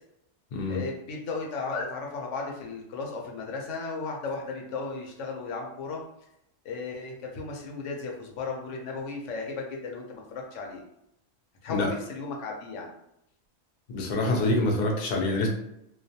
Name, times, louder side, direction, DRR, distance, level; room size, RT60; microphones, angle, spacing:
voice 1, 0.7-6.0 6.6-10.8 11.6-13.0, left 4 dB, 85° left, 0 dB, 0.9 m, -35 dB
voice 2, 13.9-15.5, left 2 dB, 55° left, 0 dB, 0.5 m, -26 dB
2.3 x 2.2 x 2.6 m, 0.80 s
omnidirectional pair, 1.2 m